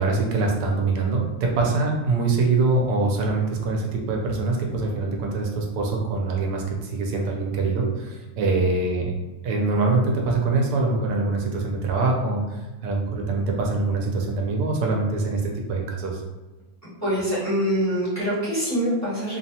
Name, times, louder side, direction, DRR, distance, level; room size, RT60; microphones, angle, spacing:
voice 1, 0.0-9.1 9.4-16.2, right 3 dB, 75° right, 0 dB, 1.1 m, -24 dB
voice 2, 17.0-19.4, equal, 15° left, -11 dB, 0.6 m, -24 dB
3.2 x 2.1 x 2.7 m, 1.1 s
omnidirectional pair, 2.1 m